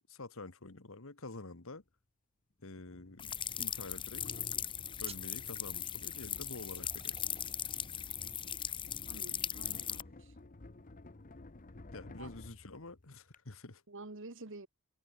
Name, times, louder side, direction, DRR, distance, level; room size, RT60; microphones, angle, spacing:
voice 1, 0.1-1.8 2.6-4.4 5.0-7.2 11.9-13.8, left 2 dB, 65° left, 1.7 m, -48 dB
sound 1, 2.8-13.4, left 2 dB, 40° left, 1.0 m, -54 dB
sound 2, 3.2-10.0, left 9 dB, 25° left, 0.7 m, -39 dB
sound 3, 5.0-10.1, right 6 dB, 30° right, 6.2 m, -59 dB
voice 2, 9.1-10.3 12.2-12.3 13.9-14.7, right 2 dB, 60° right, 1.8 m, -49 dB
head